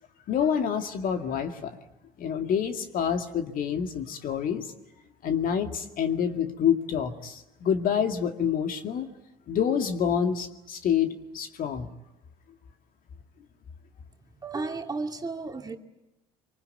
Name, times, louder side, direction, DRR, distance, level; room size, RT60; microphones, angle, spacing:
voice 1, 0.3-1.8 2.2-4.7 5.2-9.1 9.5-11.9, left 8 dB, 50° left, 6 dB, 2.2 m, -27 dB
voice 2, 14.4-15.8, right 3 dB, 20° right, 4 dB, 2.6 m, -33 dB
25.5 x 24.5 x 9.2 m, 0.93 s
hypercardioid pair, 65°, 19 cm